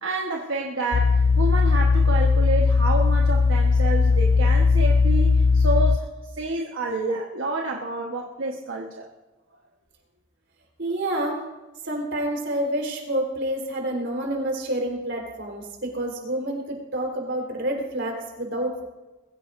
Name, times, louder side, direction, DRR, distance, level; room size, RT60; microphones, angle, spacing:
voice 1, 0.0-6.1 6.4-9.1, right 2 dB, 80° right, 0 dB, 1.3 m, -29 dB
sound 1, 0.9-6.0, left 4 dB, 65° left, 0.4 m, -18 dB
voice 2, 10.8-11.4 11.8-18.8, right 1 dB, 65° right, 0 dB, 4.2 m, -28 dB
22.0 x 15.5 x 2.6 m, 1.1 s
head